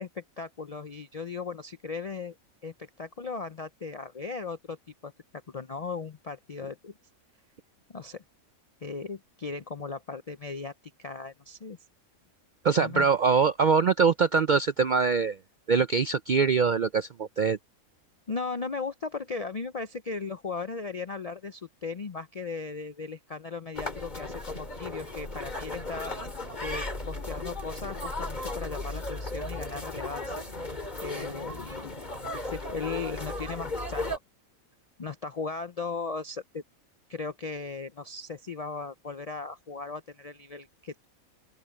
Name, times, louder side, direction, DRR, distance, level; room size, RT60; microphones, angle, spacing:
voice 1, 0.0-2.4 2.6-4.8 5.0-5.1 5.5-6.9 7.9-8.2 8.8-10.7 11.0-11.8 12.8-13.1 18.3-26.2 26.6-30.4 31.0-32.0 32.4-34.2 35.0-36.6 37.1-41.1, left 4 dB, 55° left, 0.4 m, -37 dB
voice 2, 12.6-15.4 15.7-17.6, right 5 dB, 65° right, 0.4 m, -23 dB
sound 1, 23.7-34.2, left 2 dB, 30° left, 2.9 m, -36 dB
open air
omnidirectional pair, 1.5 m